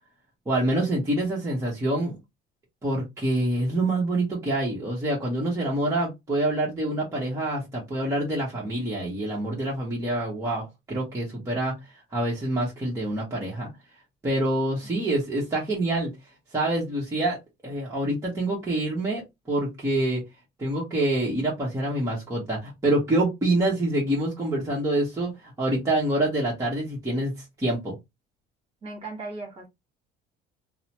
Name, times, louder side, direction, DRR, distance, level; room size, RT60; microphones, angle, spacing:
voice 1, 0.5-2.2 2.8-11.8 12.1-13.7 14.2-16.1 16.5-17.4 17.6-20.2 20.6-28.0, right 1 dB, 15° right, 1.0 m, -26 dB
voice 2, 28.8-29.7, right 3 dB, 30° right, 1.5 m, -37 dB
3.0 x 2.0 x 2.9 m
cardioid pair, 125°, 19 cm